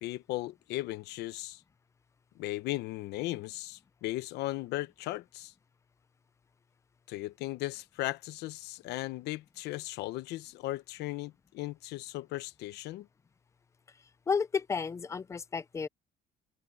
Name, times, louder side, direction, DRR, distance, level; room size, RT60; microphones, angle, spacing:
voice 1, 0.0-1.6 2.4-5.5 7.1-13.1, left 17 dB, 80° left, 0.9 m, -37 dB
voice 2, 14.3-15.9, left 5 dB, 15° left, 0.4 m, -32 dB
cardioid pair, 160°, 17 cm